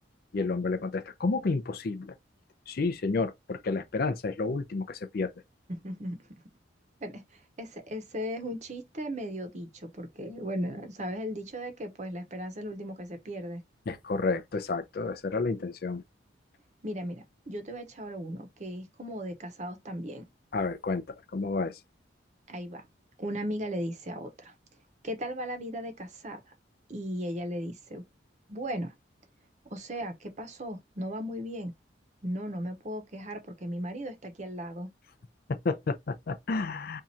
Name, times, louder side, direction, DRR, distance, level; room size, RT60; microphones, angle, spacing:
voice 1, 0.3-2.1 2.7-5.3 13.9-16.0 20.5-21.0 21.3-21.8 35.5-37.0, left 3 dB, 50° left, 0.5 m, -30 dB
voice 2, 5.7-6.2 7.0-13.6 16.8-20.3 22.5-22.9 23.2-24.5 25.0-26.4 26.9-28.0 28.5-28.9 29.7-31.7 32.2-34.9, equal, 40° right, 0.8 m, -36 dB
2.7 x 2.4 x 4.2 m
head